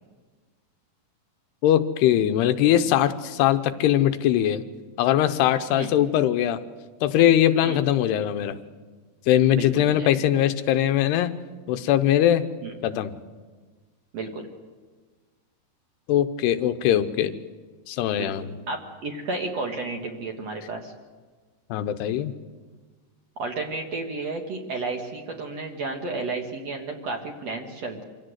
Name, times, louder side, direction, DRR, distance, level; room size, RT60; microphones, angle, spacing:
voice 1, 1.6-4.6 5.0-6.6 7.0-8.6 9.3-11.3 11.7-12.5 12.8-13.1 16.1-17.3 17.9-18.5 21.7-22.3, left 11 dB, 85° left, 9 dB, 2.9 m, -21 dB
voice 2, 9.5-10.4 12.6-12.7 14.1-14.5 18.1-20.9 23.4-28.0, right 3 dB, 50° right, 3 dB, 2.2 m, -32 dB
25.5 x 16.5 x 8.0 m, 1.4 s
omnidirectional pair, 4.7 m